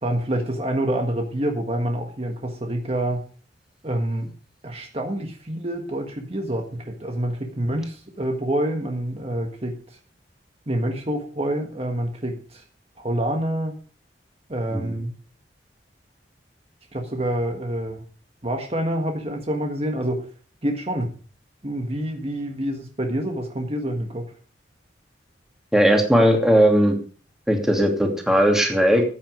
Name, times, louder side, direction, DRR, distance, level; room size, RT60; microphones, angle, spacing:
voice 1, 0.0-3.2 3.8-4.3 4.6-10.0 10.7-12.6 13.0-13.7 14.5-15.1 16.9-18.0 18.4-20.3 20.6-21.1 21.6-24.4, right 1 dB, 35° right, 3 dB, 1.5 m, -27 dB
voice 2, 25.7-27.0 27.5-29.0, equal, 5° right, 2 dB, 2.7 m, -18 dB
14.5 x 9.3 x 5.0 m, 0.39 s
head